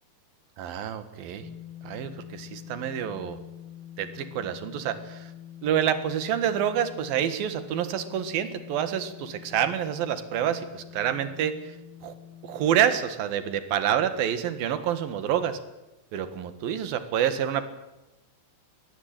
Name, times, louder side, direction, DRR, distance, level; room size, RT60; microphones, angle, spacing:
voice 1, 0.6-1.5 1.8-3.4 4.0-5.3 5.6-11.6 12.0-12.1 12.4-15.6 16.1-17.6, right 9 dB, 60° right, 11 dB, 3.0 m, -27 dB
sound 1, 1.4-13.0, left 10 dB, 55° left, 9.6 m, -45 dB
23.5 x 18.5 x 8.9 m, 0.99 s
omnidirectional pair, 5.4 m